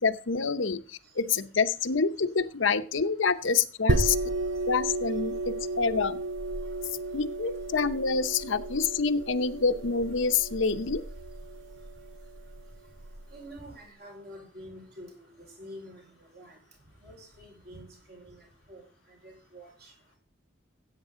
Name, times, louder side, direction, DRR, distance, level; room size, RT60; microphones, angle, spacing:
voice 1, 0.0-4.2 4.7-6.2 7.1-11.0, left 5 dB, 85° left, 10 dB, 0.8 m, -27 dB
sound 1, 3.9-13.2, right 2 dB, 80° right, 0.9 m, -33 dB
voice 2, 13.3-15.3 15.6-16.0 16.3-16.6 17.0-18.4 18.7-18.8 19.2-19.9, equal, 55° right, 1 dB, 4.8 m, -47 dB
15.5 x 8.2 x 3.7 m, 0.37 s
head